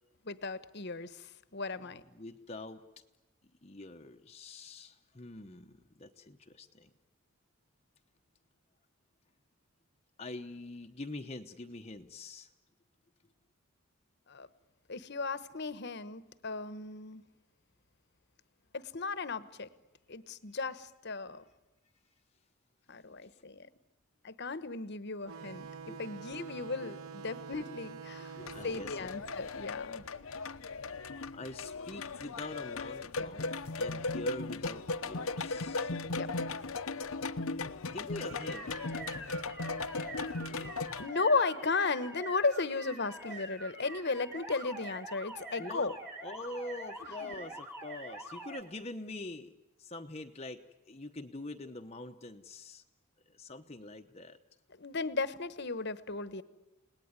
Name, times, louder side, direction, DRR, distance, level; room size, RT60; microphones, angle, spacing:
voice 1, 0.2-2.0 14.3-14.5 14.9-17.2 18.7-19.7 20.1-21.4 22.9-23.7 24.2-28.4 28.6-30.0 36.1-36.6 41.0-45.9 47.0-47.4 54.7-56.4, left 4 dB, 50° left, 14 dB, 1.1 m, -35 dB
voice 2, 2.1-2.8 3.6-6.9 10.2-12.5 23.2-23.4 25.9-26.0 26.3-26.5 26.8-27.0 27.6-27.8 28.3-29.1 31.3-33.5 33.8-35.9 37.9-38.7 39.2-39.4 45.6-49.5 49.8-52.8 53.3-54.4, left 2 dB, 30° left, 5 dB, 0.9 m, -44 dB
sound 1, 25.2-30.4, right 5 dB, 75° right, 1.0 m, -47 dB
sound 2, 28.4-41.1, left 3 dB, 75° left, 0.9 m, -37 dB
sound 3, 38.3-48.6, right 1 dB, 10° right, 1.9 m, -45 dB
30.0 x 19.0 x 9.6 m, 1.0 s
head